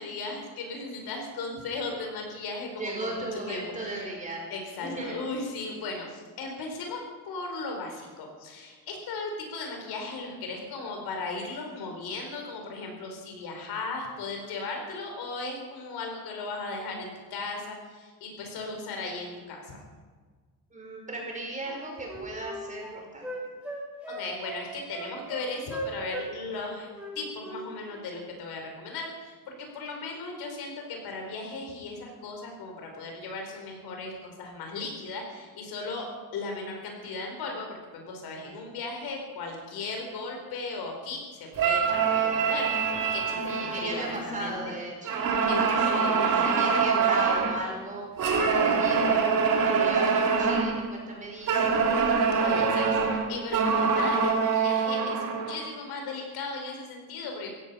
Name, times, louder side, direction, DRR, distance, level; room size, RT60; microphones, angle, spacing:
voice 1, 0.0-4.0 4.5-19.8 24.1-26.9 27.1-36.1 36.3-44.5 45.5-46.8 52.4-57.5, left 3 dB, 80° left, 2 dB, 4.8 m, -37 dB
voice 2, 2.8-4.4 4.8-5.2 20.7-23.2 43.5-45.3 45.7-52.0 52.5-53.2, right 2 dB, 20° right, -1 dB, 5.3 m, -37 dB
Wind instrument woodwind instrument, 21.6-26.3 26.5-27.6 27.9-28.1, right 1 dB, 5° right, 5.6 m, -38 dB
sound 1, 41.6-44.6 45.0-47.6 48.2-50.8 51.5-55.7, right 5 dB, 55° right, 2.7 m, -25 dB
16.0 x 16.0 x 5.7 m, 1.4 s
cardioid pair, 150°, 38 cm